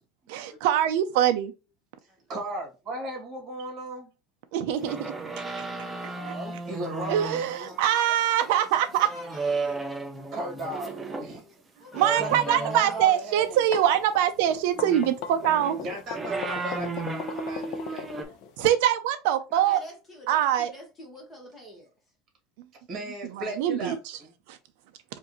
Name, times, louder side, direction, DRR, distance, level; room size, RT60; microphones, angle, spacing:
voice 1, 0.3-1.5 4.5-5.1 7.1-9.1 11.9-15.8 18.6-19.8 20.3-20.7 23.3-24.0 24.5-24.6, right 11 dB, 70° right, 0.4 m, -23 dB
voice 2, 2.3-4.1 6.1-7.8 10.3-11.6 12.2-13.6 15.8-18.1 22.9-24.3, right 1 dB, 30° right, 1.8 m, -36 dB
voice 3, 4.7-5.2 7.9-10.0 11.8-13.1 19.5-21.9, left 1 dB, 15° left, 1.5 m, -45 dB
sound 1, 4.8-11.3 11.9-13.2 14.7-18.2, right 3 dB, 10° right, 0.5 m, -35 dB
sound 2, 13.4-18.7, left 8 dB, 50° left, 0.5 m, -37 dB
4.6 x 2.5 x 3.0 m
supercardioid pair, 155°, 0 cm